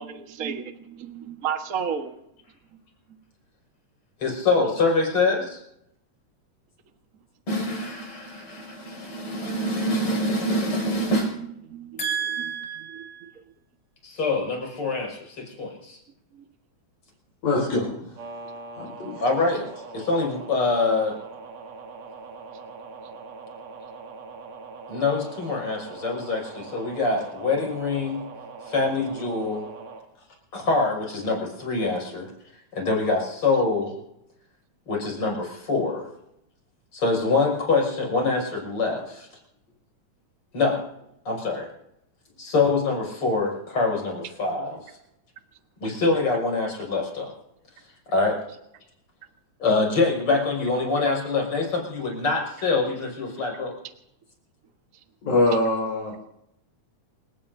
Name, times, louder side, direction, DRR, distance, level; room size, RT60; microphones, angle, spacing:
voice 1, 0.0-2.2 11.7-12.1 12.4-12.5 12.9-13.4 16.3-16.4, right 7 dB, 45° right, 5 dB, 1.1 m, -33 dB
voice 2, 4.2-5.6 7.5-11.4 12.0-13.3 14.0-16.0 19.2-19.7 19.9-21.2 24.9-28.2 28.7-29.6 30.5-32.3 32.7-33.9 34.9-36.1 36.9-39.3 40.5-40.8 41.2-41.7 42.4-44.8 45.8-47.3 48.1-48.4 49.6-53.7, left 3 dB, 45° left, 0 dB, 6.6 m, -25 dB
voice 3, 17.4-18.0 18.7-19.2 55.2-56.1, left 2 dB, 70° left, -3 dB, 6.5 m, -23 dB
sound 1, 18.2-30.0, right 4 dB, 80° right, 3.8 m, -42 dB
28.5 x 18.0 x 2.7 m, 0.79 s
omnidirectional pair, 3.6 m